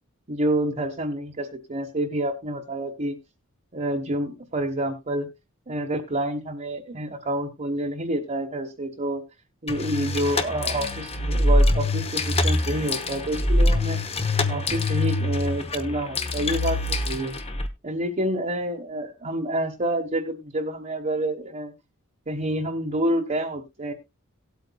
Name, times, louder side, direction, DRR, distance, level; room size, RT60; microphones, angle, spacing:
voice 1, 0.3-3.2 3.7-5.3 5.7-9.2 9.6-14.0 14.5-17.3 17.8-21.7 22.3-23.9, right 1 dB, 35° right, -1 dB, 1.2 m, -28 dB
sound 1, 9.7-17.7, left 1 dB, 30° left, 0.9 m, -24 dB
18.0 x 8.3 x 2.3 m, 0.23 s
head